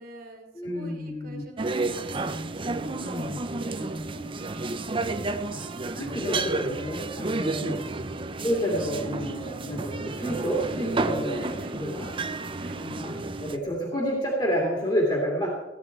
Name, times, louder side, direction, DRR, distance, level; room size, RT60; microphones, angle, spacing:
voice 1, 0.0-2.3 2.7-5.3 7.6-7.9 11.4-11.8 12.6-12.8, right 1 dB, 55° right, 2 dB, 2.8 m, -44 dB
voice 2, 0.5-1.4 3.0-3.4 5.5-5.6 6.0-7.8 8.4-12.1 12.8-15.5, equal, 25° left, -3 dB, 2.6 m, -29 dB
sound 1, 1.6-13.6, right 2 dB, 30° right, 0.7 m, -31 dB
16.0 x 10.0 x 4.6 m, 1.0 s
head